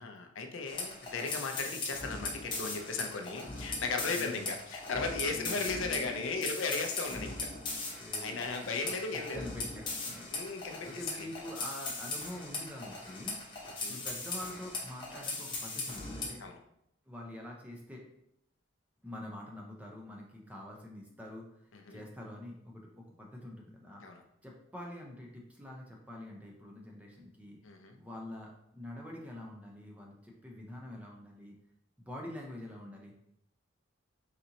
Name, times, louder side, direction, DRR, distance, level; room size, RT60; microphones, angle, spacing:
voice 1, 0.0-7.5 8.2-9.5 10.3-10.9 11.1-11.3 13.8-14.0 16.4-16.6 21.7-22.0 24.0-24.2 27.6-28.0, left 4 dB, 75° left, 4 dB, 0.6 m, -36 dB
sound 1, 0.7-16.3, left 3 dB, 25° left, 1.0 m, -39 dB
voice 2, 4.1-4.5 5.3-5.7 7.1-7.3 8.0-16.4 17.1-18.0 19.0-21.5 21.9-24.0 24.4-27.6 28.0-31.6 32.0-33.2, left 1 dB, 5° right, -1 dB, 0.6 m, -46 dB
4.2 x 3.8 x 2.8 m, 0.77 s
head